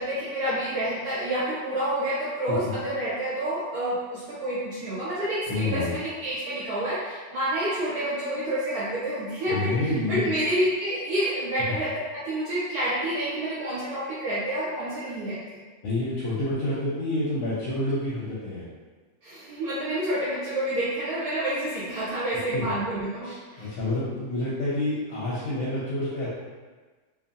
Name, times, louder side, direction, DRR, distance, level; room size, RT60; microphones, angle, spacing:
voice 1, 0.0-15.6 19.2-23.7, right 1 dB, 75° right, -10 dB, 1.2 m, -28 dB
voice 2, 5.5-5.9 9.5-10.3 11.7-11.8 15.8-18.7 22.5-22.6 23.2-26.3, left 2 dB, 70° left, -9 dB, 1.0 m, -28 dB
2.7 x 2.6 x 2.5 m, 1.4 s
omnidirectional pair, 1.7 m